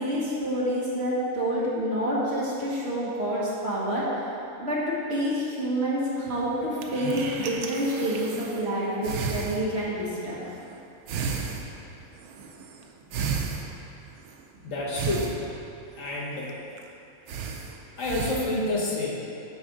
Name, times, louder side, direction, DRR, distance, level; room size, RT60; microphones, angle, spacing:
voice 1, 0.0-4.3 4.6-10.4, equal, 45° right, -7 dB, 1.5 m, -28 dB
sound 1, 6.3-8.7 9.0-10.1 10.4-10.8 11.1-14.4 14.9-16.5 16.8-16.9 17.3-18.6, right 5 dB, 85° right, 1.1 m, -34 dB
voice 2, 14.6-15.4 16.0-16.5 18.0-19.4, left 2 dB, 60° left, -4 dB, 1.3 m, -29 dB
9.3 x 3.3 x 5.0 m, 2.8 s
omnidirectional pair, 1.5 m